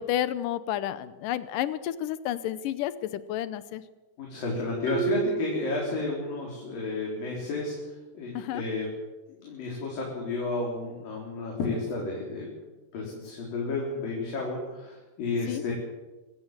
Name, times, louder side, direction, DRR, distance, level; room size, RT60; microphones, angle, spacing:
voice 1, 0.0-3.8 8.3-8.6 15.5-15.6, left 12 dB, 75° left, 14 dB, 2.0 m, -31 dB
voice 2, 4.2-7.7 8.1-8.9 9.3-12.5 12.9-15.7, left 3 dB, 55° left, -2 dB, 5.7 m, -31 dB
Marimba xylophone, 4.9-6.6, right 12 dB, 35° right, 4.0 m, -34 dB
25.5 x 16.5 x 7.5 m, 1.1 s
omnidirectional pair, 4.9 m